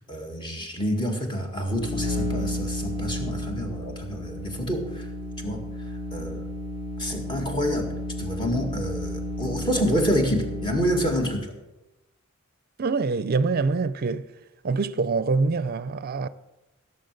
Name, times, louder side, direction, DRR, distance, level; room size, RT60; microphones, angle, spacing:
voice 1, 0.0-5.1 5.4-5.6 6.1-6.5 7.0-7.9 8.2-11.5, equal, 20° left, 2.0 m, -28 dB
sound 1, 1.5-11.4, equal, 45° left, 2.5 m, -32 dB
voice 2, 12.8-14.3 14.6-16.3, right 4 dB, 45° right, 0.5 m, -25 dB
15.5 x 7.1 x 6.6 m
head